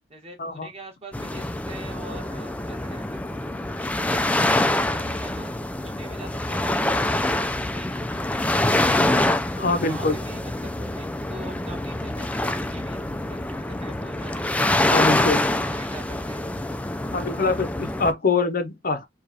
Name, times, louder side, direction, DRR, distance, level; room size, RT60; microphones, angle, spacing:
voice 1, 0.1-3.2 3.7-5.5 5.8-7.9 8.4-13.0 13.3-15.4 15.6-16.4, right 2 dB, 35° right, 1.4 m, -44 dB
sound 1, 1.1-18.1, left 1 dB, 10° left, 0.3 m, -25 dB
voice 2, 9.6-10.2 14.9-15.4 17.1-19.1, left 3 dB, 50° left, 0.6 m, -24 dB
4.8 x 2.4 x 2.7 m
head